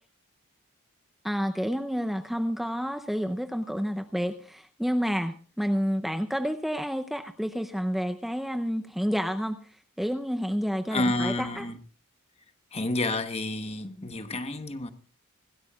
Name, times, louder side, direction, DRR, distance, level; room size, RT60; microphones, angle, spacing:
voice 1, 1.2-9.6 10.0-11.7, equal, ahead, 0.6 m, -29 dB
voice 2, 10.9-11.8 12.7-14.9, left 2 dB, 30° left, 1.1 m, -29 dB
26.0 x 13.0 x 2.4 m
head